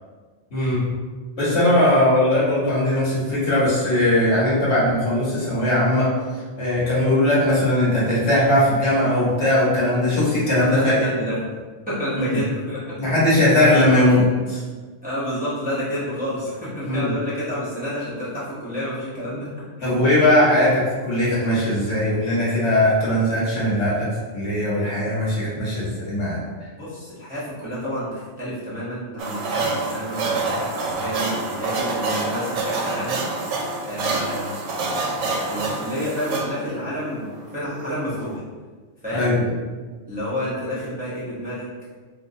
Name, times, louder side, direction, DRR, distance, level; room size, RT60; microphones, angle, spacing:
voice 1, 0.5-0.9 1.4-6.1 6.6-10.9 12.2-12.4 13.0-14.6 16.9-17.1 19.8-24.1 24.3-26.4 39.1-39.5, left 1 dB, 60° left, -7 dB, 1.4 m, -19 dB
voice 2, 10.7-11.4 11.9-13.0 15.0-19.5 19.8-20.0 26.8-33.2 33.9-34.5 35.2-37.3 37.5-38.4 39.0-39.3 40.1-41.7, equal, 10° right, -10 dB, 0.9 m, -29 dB
sound 1, 29.2-38.4, right 3 dB, 70° right, 0.9 m, -27 dB
3.6 x 2.8 x 2.7 m, 1.4 s
omnidirectional pair, 1.3 m